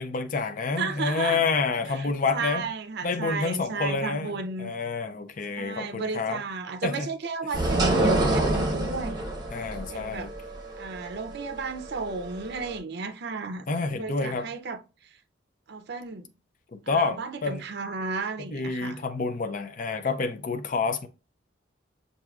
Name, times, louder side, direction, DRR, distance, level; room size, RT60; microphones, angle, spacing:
voice 1, 0.0-2.6 3.0-6.4 6.8-7.1 9.5-10.3 13.7-14.5 16.9-17.6 18.4-21.1, left 4 dB, 45° left, 0.5 m, -28 dB
voice 2, 0.8-1.4 1.9-4.7 5.5-9.2 9.9-10.3 10.8-14.8 15.7-16.3 16.9-19.0, right 4 dB, 60° right, 0.5 m, -34 dB
sound 1, 7.5-12.8, right 1 dB, 20° right, 1.0 m, -26 dB
6.0 x 2.7 x 2.3 m
head